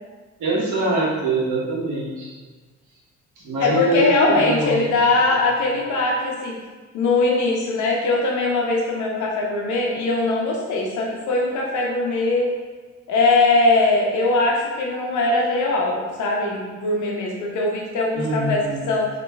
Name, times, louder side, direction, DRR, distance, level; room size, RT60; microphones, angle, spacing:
voice 1, 0.4-2.3 3.4-4.8 18.1-18.9, right 1 dB, 80° right, -5 dB, 1.1 m, -23 dB
voice 2, 3.6-6.5 6.9-12.5 13.1-18.6 18.9-19.1, left 2 dB, 75° left, -1 dB, 0.8 m, -21 dB
4.0 x 2.9 x 2.2 m, 1.4 s
cardioid pair, 90°, 30 cm